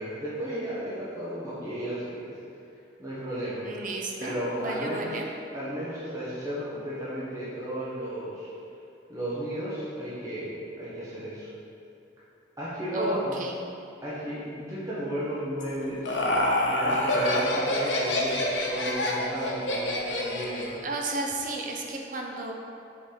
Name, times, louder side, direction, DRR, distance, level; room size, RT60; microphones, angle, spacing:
voice 1, 0.0-2.4 3.0-3.6 4.2-5.2 5.5-8.5 9.1-11.5 12.6-13.3 14.0-16.1 16.6-20.8, equal, 15° right, -10 dB, 1.2 m, -33 dB
voice 2, 3.6-5.3 12.9-13.5 20.8-22.5, right 2 dB, 45° right, 1 dB, 0.7 m, -33 dB
Laughter, 15.6-20.8, left 1 dB, 70° left, 1.0 m, -27 dB
7.1 x 4.8 x 3.9 m, 2.7 s
head